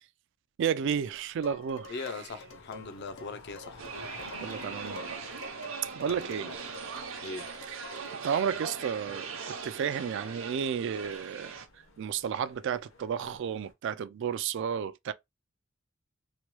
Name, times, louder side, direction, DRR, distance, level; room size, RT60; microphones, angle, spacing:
voice 1, 0.6-2.0 4.3-5.2 5.9-6.5 7.7-7.8 8.2-11.6 12.0-15.1, right 7 dB, 60° right, 0.3 m, -32 dB
sound 1, 0.9-13.7, left 3 dB, 75° left, 1.0 m, -53 dB
Dishes pots and pans, 1.4-8.3, left 1 dB, 90° left, 0.7 m, -48 dB
voice 2, 1.9-3.8 6.1-6.5 7.2-7.5, left 4 dB, 55° left, 0.5 m, -40 dB
sound 2, 3.8-11.7, right 5 dB, 75° right, 0.7 m, -40 dB
3.0 x 2.2 x 3.0 m
head